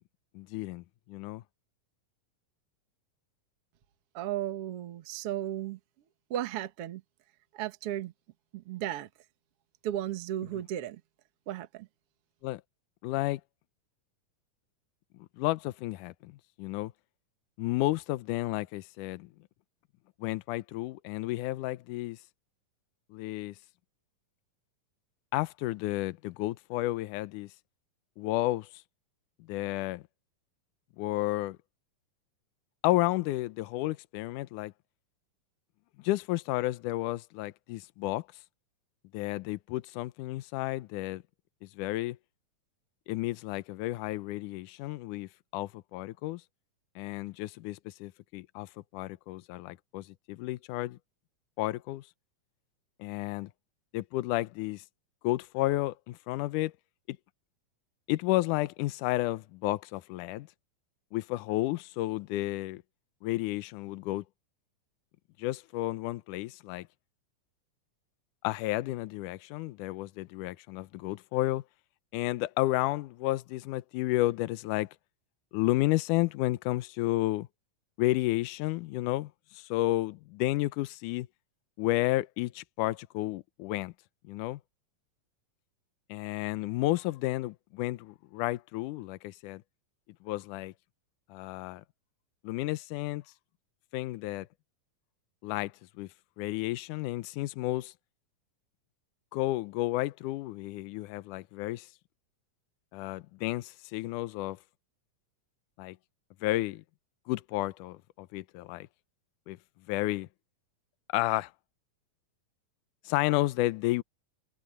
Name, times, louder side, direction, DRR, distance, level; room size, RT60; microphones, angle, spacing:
voice 1, 0.4-1.4 12.4-12.6 13.0-13.4 15.4-16.9 17.6-19.3 20.2-22.2 23.1-23.6 25.3-27.5 28.2-28.7 29.5-30.0 31.0-31.6 32.8-34.7 36.0-38.2 39.1-41.2 41.8-42.2 43.1-46.4 47.0-51.0 51.6-52.0 53.0-53.5 53.9-54.8 55.2-56.7 58.1-60.5 61.1-62.8 63.2-64.2 65.4-66.9 68.4-71.6 72.1-74.9 75.5-77.5 78.0-81.3 81.8-83.9 84.3-84.6 86.1-89.6 90.2-90.7 91.3-91.8 92.4-93.2 93.9-94.5 95.4-95.7 96.0-96.1 96.4-97.9 99.3-101.9 102.9-104.6 105.8-106.0 106.4-106.8 107.3-108.9 109.5-109.6 109.9-110.3 111.1-111.5 113.1-114.0, left 17 dB, 75° left, 2.1 m, -32 dB
voice 2, 4.1-5.8 6.3-7.0 7.5-8.1 8.5-9.1 9.8-11.0 11.5-11.9, right 12 dB, 55° right, 1.8 m, -34 dB
omnidirectional pair, 3.9 m